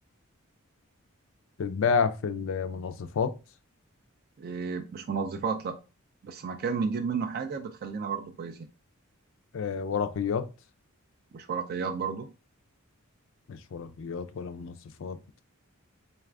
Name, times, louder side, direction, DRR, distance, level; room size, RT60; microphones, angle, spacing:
voice 1, 1.6-3.3 9.5-10.5 13.5-15.2, left 6 dB, 60° left, 0.4 m, -30 dB
voice 2, 4.4-5.8 6.2-8.7 11.3-12.3, right 5 dB, 45° right, 0.3 m, -32 dB
4.0 x 2.4 x 3.2 m
head